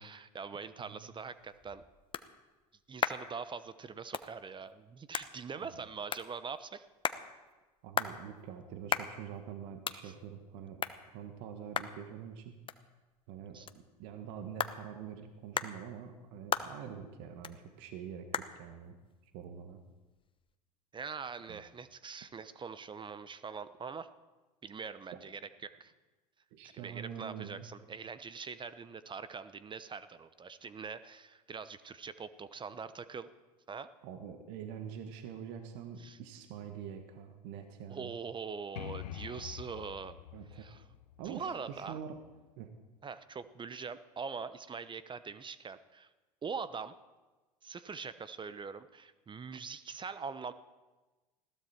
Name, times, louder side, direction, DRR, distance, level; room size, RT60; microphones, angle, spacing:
voice 1, 0.0-1.8 2.9-6.9 10.0-10.1 13.5-13.7 20.9-24.1 24.6-25.9 26.7-33.3 33.7-33.9 36.0-36.2 37.9-40.2 40.5-40.8 41.2-42.0 43.0-46.1 46.4-47.0 47.6-50.5, right 5 dB, 25° right, 14 dB, 0.9 m, -43 dB
voice 2, 0.8-1.1 7.8-10.8 11.1-12.5 13.3-19.0 19.3-19.8 21.5-21.6 26.5-27.7 34.0-38.2 40.3-40.7 41.2-42.2 42.6-42.7, right 8 dB, 60° right, 6 dB, 1.7 m, -45 dB
sound 1, 1.2-20.5, left 7 dB, 25° left, 1.0 m, -41 dB
sound 2, 38.8-42.4, left 11 dB, 75° left, 1.0 m, -46 dB
20.5 x 16.0 x 4.5 m, 1.2 s
hypercardioid pair, 80°, 21 cm